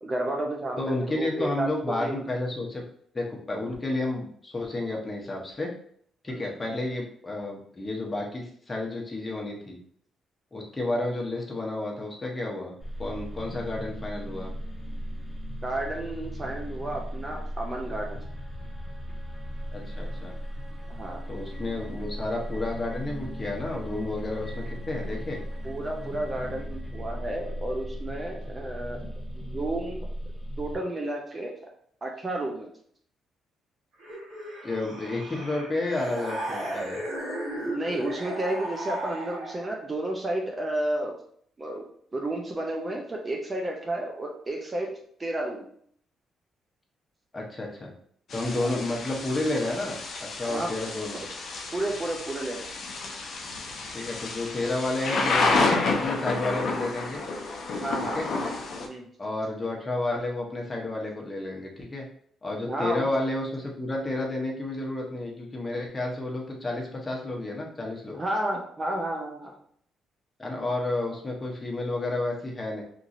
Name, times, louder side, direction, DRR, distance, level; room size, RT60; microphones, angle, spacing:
voice 1, 0.0-2.2 6.3-6.4 15.6-18.2 20.9-21.2 25.6-29.0 29.3-30.1 30.6-31.5 32.0-32.7 37.6-41.2 41.6-44.9 45.2-45.7 48.6-48.7 50.4-50.7 51.1-51.3 51.7-52.7 57.8-58.2 58.9-59.1 62.6-63.1 68.1-69.5, right 1 dB, 25° right, 1 dB, 0.5 m, -32 dB
voice 2, 0.8-2.8 3.1-5.7 6.2-9.8 10.5-12.7 13.0-14.5 19.7-20.3 21.3-25.4 34.6-37.0 47.3-47.9 48.3-51.2 53.9-57.2 58.0-58.3 59.2-62.1 62.4-68.2 70.4-72.8, left 2 dB, 20° left, -2 dB, 0.8 m, -31 dB
sound 1, 12.8-30.8, equal, 10° right, 1.4 m, -37 dB
sound 2, 34.0-39.8, right 1 dB, 75° right, 1.4 m, -35 dB
Thunder / Rain, 48.3-58.9, left 3 dB, 60° left, 0.5 m, -30 dB
3.0 x 2.6 x 2.5 m, 0.63 s
cardioid pair, 90°, 0 cm